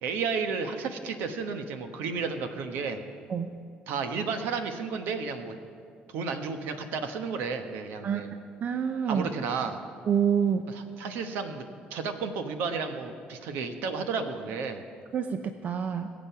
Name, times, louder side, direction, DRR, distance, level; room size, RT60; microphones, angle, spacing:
voice 1, 0.0-3.0 3.9-5.5 6.1-8.3 9.1-9.8 10.7-11.6 11.9-14.8, right 5 dB, 80° right, 7 dB, 1.2 m, -32 dB
voice 2, 8.6-9.3 10.1-10.6 15.1-16.1, right 7 dB, 45° right, 9 dB, 0.6 m, -27 dB
21.5 x 7.6 x 5.8 m, 2.3 s
cardioid pair, 100°, 3 cm